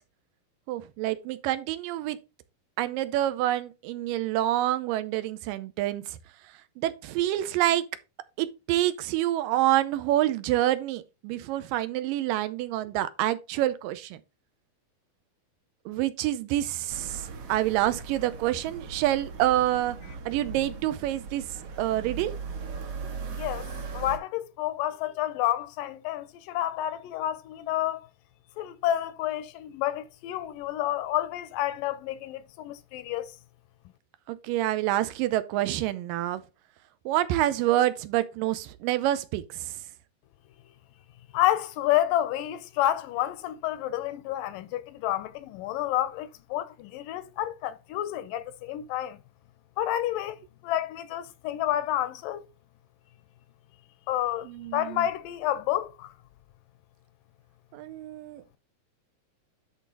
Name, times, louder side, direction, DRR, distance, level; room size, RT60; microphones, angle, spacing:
voice 1, 0.7-2.2 2.8-6.2 6.8-7.9 8.4-14.2 15.9-20.0 20.3-21.5 21.8-22.3 34.3-36.4 37.1-39.8 54.5-55.1 57.7-58.4, right 14 dB, 90° right, 2.4 m, -27 dB
sound 1, 16.9-24.2, right 5 dB, 55° right, 1.8 m, -39 dB
voice 2, 23.3-23.7 23.9-28.1 28.6-33.3 41.3-49.2 49.8-52.5 54.1-56.1, left 13 dB, 85° left, 2.3 m, -29 dB
11.0 x 4.0 x 3.8 m
omnidirectional pair, 3.9 m